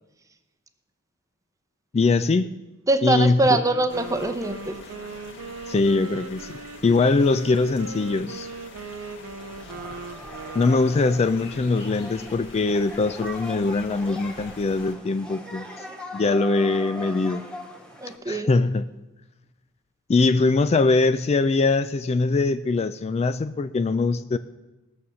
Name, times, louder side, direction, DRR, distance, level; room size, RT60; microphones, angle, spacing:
voice 1, 1.9-2.5 3.0-3.4 5.7-8.5 10.5-15.7 16.1-17.5 18.3-18.8 20.1-24.4, left 3 dB, 30° left, 12 dB, 0.3 m, -22 dB
voice 2, 2.9-4.8 18.0-18.5, right 2 dB, 15° right, 8 dB, 0.7 m, -23 dB
Wind instrument woodwind instrument, 3.3-11.3, right 4 dB, 90° right, 0.6 m, -39 dB
sound 1, 3.9-14.9, left 2 dB, 60° left, 1.9 m, -45 dB
sound 2, 9.4-18.2, left 1 dB, 5° left, 1.8 m, -40 dB
18.0 x 7.0 x 6.3 m, 1.0 s
head